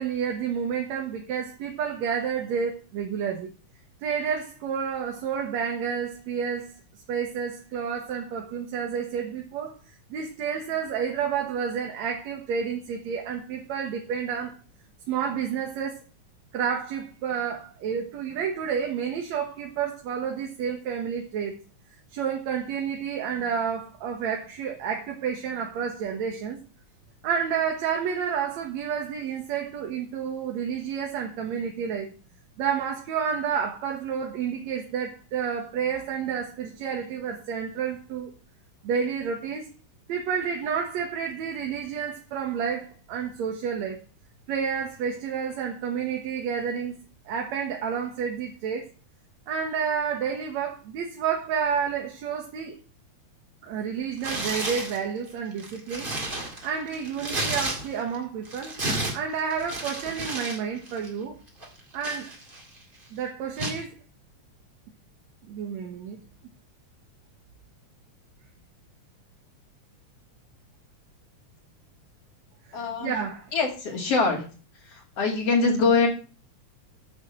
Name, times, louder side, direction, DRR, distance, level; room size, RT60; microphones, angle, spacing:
voice 1, 0.0-3.5 4.0-6.8 7.1-9.8 10.1-14.6 15.1-16.0 16.5-21.6 22.1-26.6 27.2-32.1 32.6-38.3 38.8-39.7 40.1-44.0 44.5-47.0 47.3-48.9 49.5-52.8 53.6-56.1 56.6-58.7 59.1-61.4 61.9-62.3 63.1-63.9 65.5-66.2 72.7-73.5, right 7 dB, 70° right, 2.5 m, -30 dB
Tearing, 54.2-55.0 55.5-58.1 58.4-60.6 60.9-61.1 61.6-62.8 63.6-63.8, right 2 dB, 20° right, 1.8 m, -32 dB
voice 2, 72.7-73.1 73.5-74.4 74.8-76.1, left 4 dB, 55° left, 3.3 m, -23 dB
8.2 x 6.3 x 7.5 m
omnidirectional pair, 3.3 m